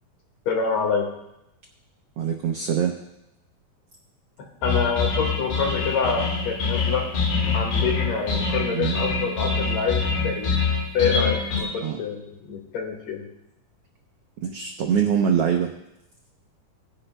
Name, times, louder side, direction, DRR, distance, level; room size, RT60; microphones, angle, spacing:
voice 1, 0.5-1.1 4.4-7.1 7.5-10.7 10.9-13.3, left 6 dB, 60° left, 1 dB, 2.9 m, -26 dB
voice 2, 2.2-3.0 8.7-9.0 11.8-12.0 14.4-15.7, right 8 dB, 85° right, 3 dB, 1.3 m, -23 dB
sound 1, 4.6-11.6, left 4 dB, 90° left, 3.8 m, -25 dB
19.0 x 10.0 x 2.2 m, 0.86 s
omnidirectional pair, 3.7 m